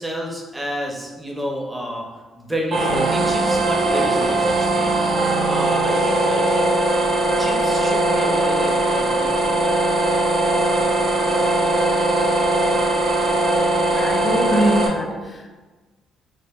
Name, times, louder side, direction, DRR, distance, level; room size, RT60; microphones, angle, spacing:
voice 1, 0.0-2.1 2.3-5.0 5.5-6.7 7.4-9.6, equal, 10° right, -1 dB, 0.6 m, -30 dB
sound 1, 2.7-14.9, right 2 dB, 55° right, 0.4 m, -20 dB
voice 2, 14.0-15.5, equal, 35° left, 3 dB, 0.4 m, -22 dB
2.2 x 2.1 x 3.4 m, 1.2 s
cardioid pair, 90°, 0 cm